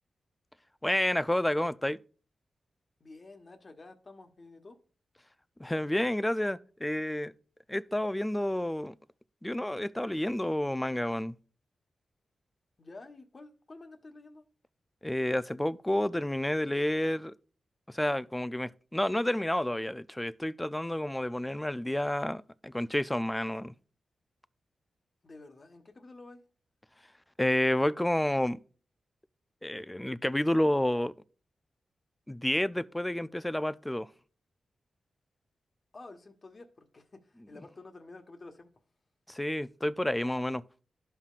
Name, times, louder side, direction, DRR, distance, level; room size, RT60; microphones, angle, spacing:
voice 1, 0.8-2.0 5.6-7.3 7.7-8.9 9.4-11.4 15.0-17.3 17.9-23.7 27.4-28.6 29.6-31.1 32.3-34.1 39.3-40.6, left 1 dB, 10° left, 0.4 m, -30 dB
voice 2, 3.0-4.8 12.8-14.4 25.2-26.4 35.9-38.7, left 2 dB, 45° left, 1.2 m, -50 dB
12.5 x 5.6 x 2.4 m
cardioid pair, 70°, 0 cm